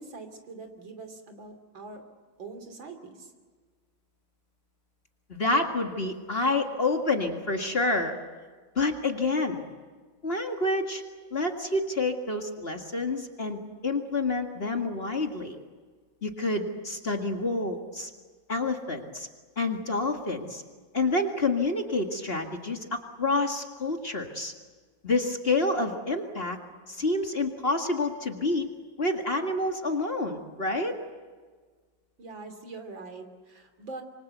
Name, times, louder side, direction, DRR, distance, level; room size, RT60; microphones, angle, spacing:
voice 1, 0.0-2.0 2.4-3.3 32.2-34.0, right 3 dB, 75° right, 6 dB, 3.6 m, -43 dB
voice 2, 5.3-8.1 8.8-9.6 10.2-11.0 11.3-15.6 16.2-18.1 18.5-19.3 19.6-20.6 20.9-24.5 25.0-26.6 26.9-28.7 29.0-31.0, left 2 dB, 30° left, 4 dB, 2.0 m, -28 dB
26.0 x 24.5 x 8.1 m, 1.5 s
omnidirectional pair, 2.1 m